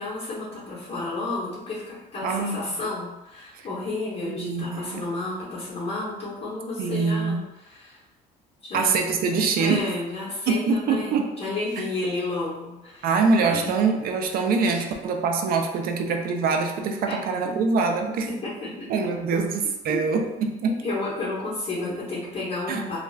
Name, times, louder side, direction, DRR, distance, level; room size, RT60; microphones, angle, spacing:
voice 1, 0.0-8.0 8.6-9.0 9.6-13.7 14.7-14.8 17.1-17.2 17.4-17.5 18.3-18.9 19.9-20.0 20.6-23.0, left 2 dB, 35° left, -8 dB, 0.9 m, -32 dB
voice 2, 2.2-2.8 4.2-5.0 6.8-7.4 8.7-9.8 10.5-11.3 11.8-11.9 13.0-18.3 18.9-20.8 22.7-22.9, right 4 dB, 60° right, 4 dB, 0.4 m, -24 dB
2.3 x 2.3 x 3.2 m, 1.0 s
cardioid pair, 110°, 17 cm